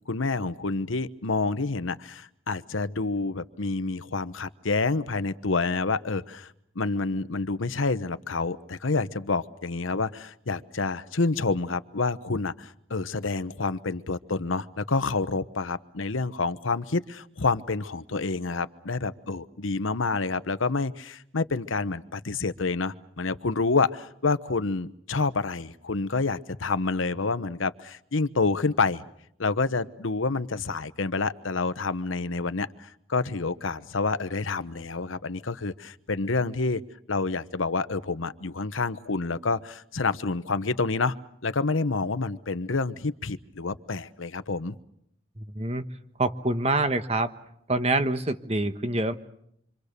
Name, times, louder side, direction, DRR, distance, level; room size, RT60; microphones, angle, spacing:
voice 1, 0.1-29.0 29.4-36.8 37.1-41.2 41.4-44.8, left 3 dB, 90° left, 13 dB, 1.0 m, -28 dB
voice 2, 45.4-45.9 46.2-47.3 47.7-49.2, right 2 dB, 30° right, 9 dB, 1.3 m, -26 dB
27.5 x 25.5 x 6.8 m, 0.73 s
head